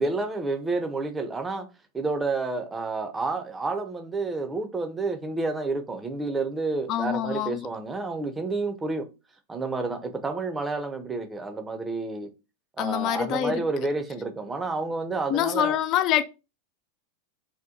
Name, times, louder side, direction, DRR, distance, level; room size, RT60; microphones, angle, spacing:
voice 1, 0.0-1.7 1.9-9.1 9.5-12.3 12.8-15.8, right 3 dB, 15° right, 0.6 m, -30 dB
voice 2, 6.9-7.7 12.8-13.6 15.3-16.2, left 10 dB, 45° left, 0.3 m, -25 dB
2.8 x 2.2 x 3.6 m
hypercardioid pair, 95°, 0 cm